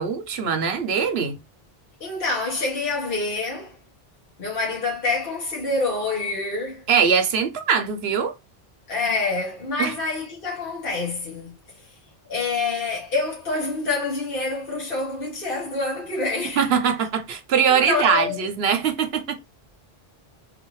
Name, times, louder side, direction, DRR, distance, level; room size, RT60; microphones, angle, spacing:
voice 1, 0.0-1.4 6.9-8.3 9.8-9.9 16.6-19.4, right 6 dB, 80° right, 1.0 m, -22 dB
voice 2, 2.0-3.8 4.4-6.9 8.9-11.9 12.3-16.7 17.7-18.4, left 3 dB, 60° left, 1.5 m, -27 dB
3.7 x 2.6 x 4.6 m
omnidirectional pair, 1.0 m